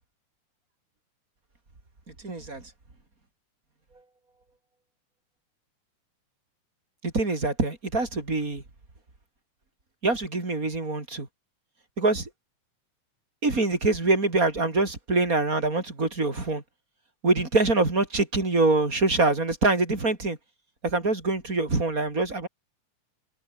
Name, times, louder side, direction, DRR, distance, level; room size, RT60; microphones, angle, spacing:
voice 1, 2.2-2.6 7.0-8.6 10.0-11.3 12.0-12.3 13.4-16.6 17.2-20.4 20.8-22.5, right 3 dB, 25° right, 4.7 m, -24 dB
omnidirectional pair, 3.7 m